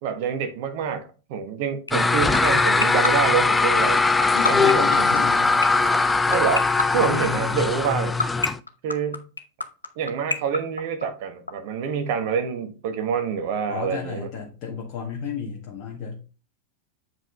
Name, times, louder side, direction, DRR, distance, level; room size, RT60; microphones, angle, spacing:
voice 1, 0.0-4.0 4.5-5.3 6.3-8.2 8.8-9.2 10.0-14.3, right 7 dB, 50° right, 1.3 m, -27 dB
sound 1, 1.9-11.5, left 3 dB, 80° left, 0.7 m, -24 dB
sound 2, 1.9-8.6, left 3 dB, 10° left, 0.4 m, -20 dB
voice 2, 4.3-5.5 6.9-7.6 13.7-16.2, left 6 dB, 40° left, 1.7 m, -33 dB
7.8 x 4.9 x 3.3 m
figure-of-eight pair, 90°, 0 cm